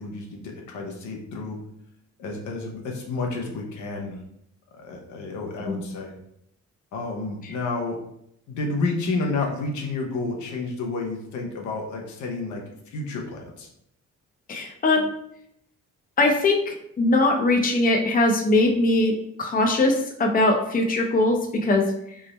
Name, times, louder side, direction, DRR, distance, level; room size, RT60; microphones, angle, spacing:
voice 1, 0.0-1.6 2.2-4.2 4.7-6.1 6.9-8.0 8.5-13.7, left 3 dB, 75° left, 1 dB, 0.8 m, -30 dB
voice 2, 14.5-15.1 16.2-19.1 19.4-22.2, left 2 dB, 30° left, 2 dB, 0.6 m, -21 dB
3.5 x 2.0 x 4.1 m, 0.74 s
cardioid pair, 90°, 30 cm